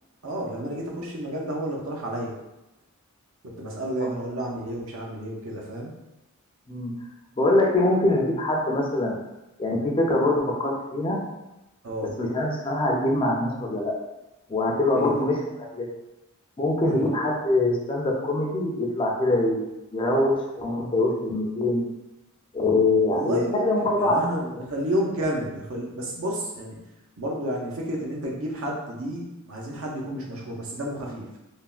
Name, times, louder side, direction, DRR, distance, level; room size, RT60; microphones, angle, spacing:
voice 1, 0.2-2.3 3.6-5.9 11.8-12.1 15.0-15.1 16.8-17.0 23.1-26.8 27.2-31.3, equal, 65° right, -2 dB, 0.6 m, -31 dB
voice 2, 7.4-9.2 9.6-11.2 12.2-13.9 14.5-15.4 15.7-15.9 16.6-19.6 19.9-21.8 22.5-24.3 24.5-24.6, left 2 dB, 25° left, -1 dB, 0.4 m, -23 dB
3.4 x 2.1 x 2.4 m, 0.97 s
head